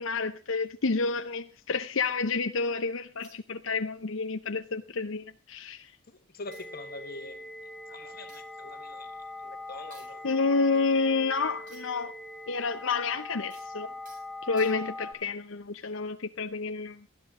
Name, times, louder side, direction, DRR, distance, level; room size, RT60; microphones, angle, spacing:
voice 1, 0.0-5.9 10.2-12.1 12.5-13.9 14.4-17.0, left 4 dB, 70° left, 0.8 m, -29 dB
sound 1, 0.6-2.5 3.2-4.1 4.3-4.6 4.9-5.8 6.1-6.2 6.5-12.1 12.4-15.1 15.7-16.0, right 4 dB, 40° right, 7.6 m, -61 dB
voice 2, 6.1-7.5 7.9-10.9 11.3-11.4, left 2 dB, 45° left, 1.5 m, -45 dB
sound 2, 6.5-15.1, left 1 dB, ahead, 1.9 m, -42 dB
19.0 x 12.5 x 3.7 m
head